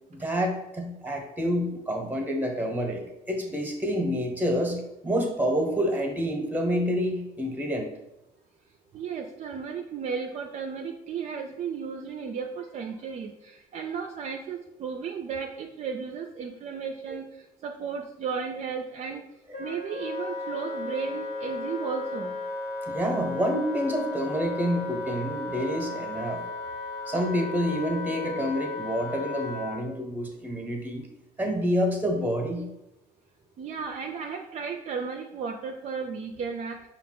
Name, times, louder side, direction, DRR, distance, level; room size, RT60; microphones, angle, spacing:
voice 1, 0.1-7.9 22.9-26.4 27.1-31.0 31.4-32.7, equal, 10° right, 2 dB, 0.8 m, -28 dB
voice 2, 8.9-19.2 19.6-22.4 33.6-36.9, right 6 dB, 45° right, 3 dB, 0.4 m, -34 dB
Wind instrument woodwind instrument, 19.5-29.8, left 2 dB, 80° left, 1.1 m, -35 dB
5.2 x 2.3 x 3.7 m, 0.91 s
cardioid pair, 110°, 17 cm